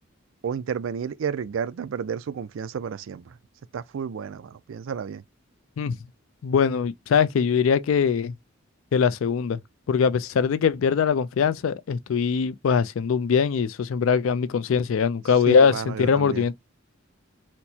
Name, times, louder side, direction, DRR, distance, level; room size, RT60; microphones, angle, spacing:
voice 1, 0.4-3.4 3.7-5.2 15.5-16.5, right 7 dB, 70° right, 0.4 m, -31 dB
voice 2, 6.4-8.3 8.9-9.6 9.9-16.5, left 6 dB, 75° left, 0.4 m, -22 dB
4.3 x 2.1 x 2.7 m
head